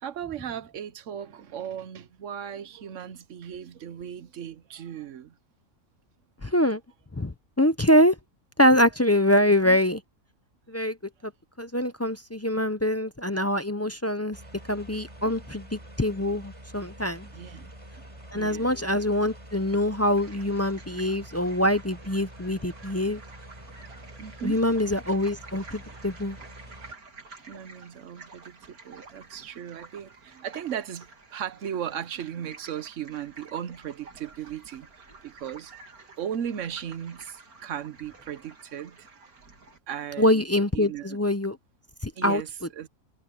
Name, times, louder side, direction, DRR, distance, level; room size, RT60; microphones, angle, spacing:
voice 1, 0.0-5.4 9.4-9.8 17.3-17.7 18.3-18.8 24.2-24.6 27.5-34.9 35.2-35.7 36.2-39.2 39.9-40.4 40.7-41.2 42.2-42.5 42.8-42.9, right 9 dB, 60° right, 1.2 m, -37 dB
voice 2, 6.4-6.8 7.1-8.2 8.6-10.0 10.7-11.0 11.2-11.3 11.6-14.4 14.7-17.3 18.3-23.2 24.4-26.4 40.2-41.6 42.0-42.4, left 1 dB, 20° left, 0.4 m, -24 dB
sound 1, 14.3-26.9, right 1 dB, 20° right, 4.4 m, -46 dB
sound 2, 20.2-39.8, right 4 dB, 85° right, 3.0 m, -50 dB
omnidirectional pair, 1.5 m